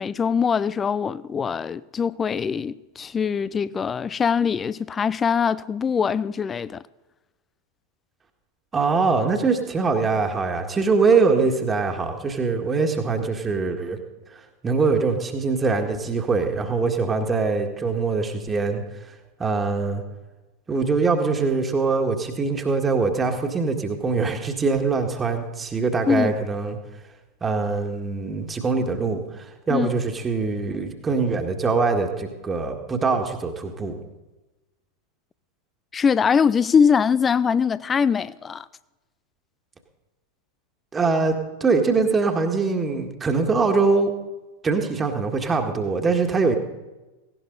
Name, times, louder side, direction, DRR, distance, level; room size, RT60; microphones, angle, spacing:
voice 1, 0.0-6.8 26.1-26.3 29.7-29.9 35.9-38.7, left 6 dB, 20° left, 0.4 m, -22 dB
voice 2, 8.7-14.0 14.3-18.8 19.4-20.0 20.7-26.8 27.4-34.0 40.9-44.1 44.6-46.5, right 4 dB, 15° right, 1.8 m, -23 dB
17.5 x 17.0 x 4.0 m
figure-of-eight pair, 90°, 0 cm